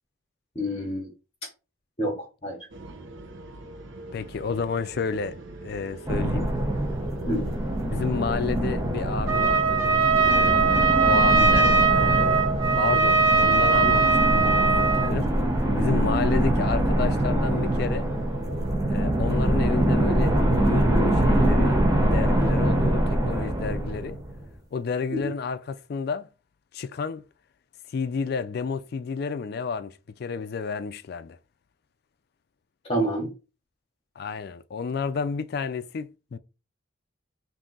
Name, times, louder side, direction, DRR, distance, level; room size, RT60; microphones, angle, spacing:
voice 1, 0.5-1.1 1.4-1.5 2.0-2.6 7.3-7.5 25.1-25.3 32.8-33.3, equal, 30° left, 0.9 m, -28 dB
sound 1, 2.7-18.8, right 1 dB, 70° right, 0.8 m, -42 dB
voice 2, 4.1-6.5 7.9-9.8 10.2-12.5 12.7-14.2 14.4-15.3 15.8-18.1 18.9-24.2 24.7-26.3 26.7-27.2 27.9-31.4 34.2-36.4, left 5 dB, 50° left, 0.3 m, -31 dB
sound 2, 6.1-24.5, right 1 dB, 20° right, 0.7 m, -24 dB
Trumpet, 9.3-15.1, right 5 dB, 90° right, 1.3 m, -20 dB
3.6 x 2.7 x 3.9 m
head